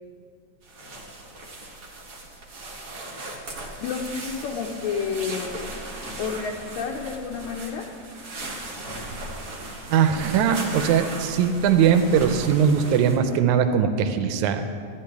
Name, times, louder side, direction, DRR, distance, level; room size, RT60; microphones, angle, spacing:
sound 1, 0.6-13.2, right 2 dB, 50° right, 1.0 m, -37 dB
voice 1, 3.8-5.6 6.2-8.1, left 6 dB, 80° left, -1 dB, 1.9 m, -30 dB
voice 2, 9.9-14.6, right 7 dB, 85° right, 8 dB, 2.0 m, -20 dB
14.0 x 9.8 x 3.5 m, 2.2 s
omnidirectional pair, 3.4 m